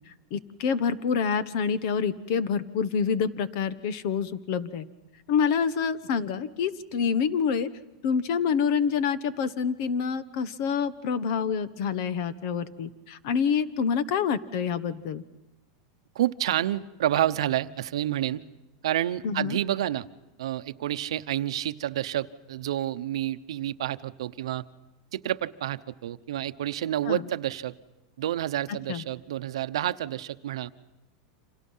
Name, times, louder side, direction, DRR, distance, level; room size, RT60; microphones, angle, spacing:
voice 1, 0.3-4.9 5.3-7.7 8.0-15.2 19.2-19.6 27.1-27.2 28.9-29.0, left 6 dB, 45° left, 15 dB, 1.1 m, -27 dB
voice 2, 16.1-18.4 18.8-20.1 20.4-24.6 25.1-27.7 28.2-30.7, right 12 dB, 90° right, 13 dB, 0.9 m, -29 dB
29.5 x 26.5 x 5.6 m, 0.96 s
supercardioid pair, 170°, 3 cm